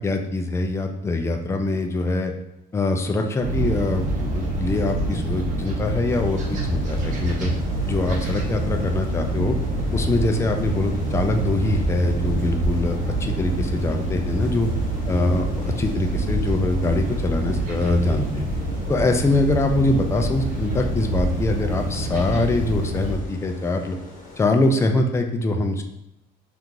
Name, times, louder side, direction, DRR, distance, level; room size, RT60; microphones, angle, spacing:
voice 1, 0.0-2.3 2.7-7.5 7.8-9.6 9.9-14.7 15.1-18.5 18.9-24.0 24.4-25.8, left 2 dB, 15° left, 5 dB, 0.3 m, -23 dB
sound 1, 3.4-23.2, right 1 dB, 50° right, 0.8 m, -26 dB
sound 2, 6.1-24.5, left 2 dB, 50° left, 0.9 m, -44 dB
2.8 x 2.4 x 3.7 m, 0.86 s
cardioid pair, 110°, 17 cm